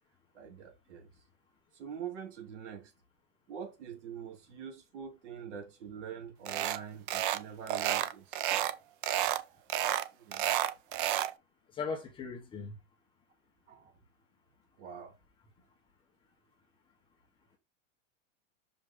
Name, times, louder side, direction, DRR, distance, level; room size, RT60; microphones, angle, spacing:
voice 1, 0.3-1.1 1.7-2.9 3.5-8.6 10.1-10.5 13.7-13.9 14.8-15.2, right 7 dB, 70° right, 2.9 m, -45 dB
sound 1, 6.5-6.8 7.1-7.4 7.7-8.7 9.0-9.4 9.7-11.3, right 12 dB, 45° right, 0.6 m, -30 dB
voice 2, 11.7-12.8, left 5 dB, 15° left, 1.0 m, -38 dB
6.2 x 5.1 x 3.7 m
supercardioid pair, 170°, 37 cm